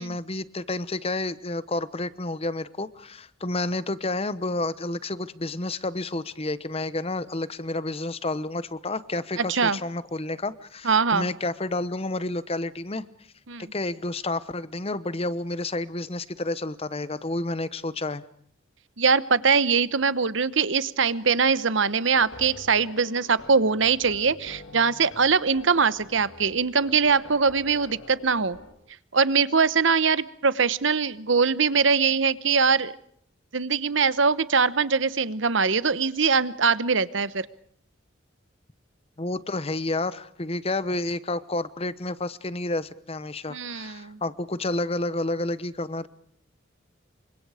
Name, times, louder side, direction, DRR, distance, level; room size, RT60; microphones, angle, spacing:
voice 1, 0.0-13.0 13.6-18.2 39.2-46.1, left 2 dB, 30° left, 16 dB, 1.0 m, -30 dB
voice 2, 9.4-9.8 10.8-11.3 13.5-13.7 19.0-28.6 29.1-32.9 33.5-37.5 43.5-44.2, right 5 dB, 70° right, 16 dB, 1.0 m, -22 dB
sound 1, 22.1-28.7, left 2 dB, 80° left, 3.4 m, -46 dB
28.5 x 25.0 x 5.0 m, 0.66 s
head